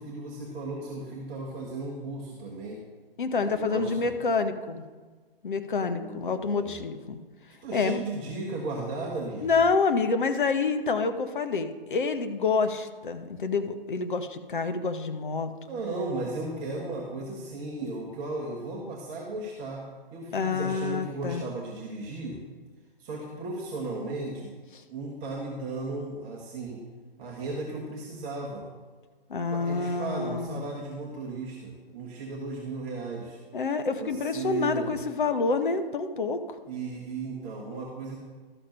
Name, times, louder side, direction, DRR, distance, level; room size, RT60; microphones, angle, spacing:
voice 1, 0.0-2.8 3.4-4.1 5.8-6.7 7.6-9.7 15.7-19.8 20.1-22.4 23.0-24.5 24.9-26.8 27.2-28.6 29.5-33.4 33.9-35.0 36.6-38.2, right 2 dB, 20° right, -3 dB, 1.2 m, -35 dB
voice 2, 3.2-4.8 5.4-7.2 7.7-8.0 9.4-15.5 20.3-21.4 29.3-30.6 33.5-36.4, left 4 dB, 55° left, 8 dB, 0.9 m, -27 dB
12.0 x 6.6 x 5.5 m, 1.4 s
figure-of-eight pair, 130°, 30 cm